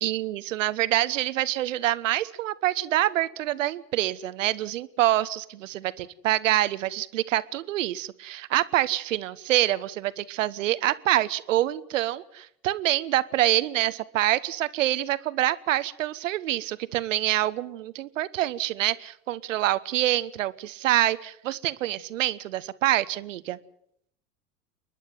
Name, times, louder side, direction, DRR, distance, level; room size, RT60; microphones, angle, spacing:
voice 1, 0.0-23.6, right 14 dB, 65° right, 17 dB, 1.1 m, -26 dB
29.5 x 11.5 x 9.3 m, 0.71 s
figure-of-eight pair, 85°, 41 cm